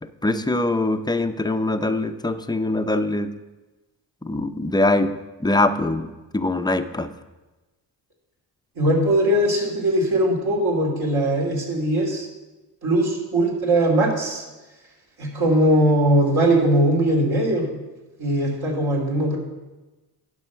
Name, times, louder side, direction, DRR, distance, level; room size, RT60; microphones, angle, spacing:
voice 1, 0.0-3.3 4.3-5.1 5.4-6.1 6.3-7.1, left 2 dB, 10° left, 9 dB, 0.6 m, -22 dB
voice 2, 8.8-12.3 12.8-14.4 15.2-17.7 18.2-19.4, right 1 dB, 65° right, -2 dB, 3.0 m, -20 dB
11.0 x 5.4 x 5.7 m, 1.1 s
cardioid pair, 70°, 41 cm